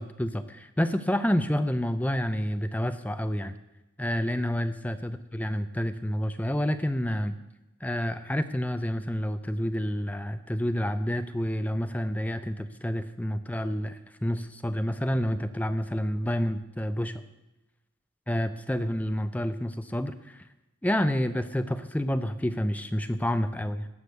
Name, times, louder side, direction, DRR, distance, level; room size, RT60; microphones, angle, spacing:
voice 1, 0.0-3.6 4.0-7.4 7.8-17.2 18.3-20.4 20.8-23.9, equal, 5° left, 10 dB, 0.5 m, -29 dB
17.0 x 6.6 x 6.6 m, 0.97 s
head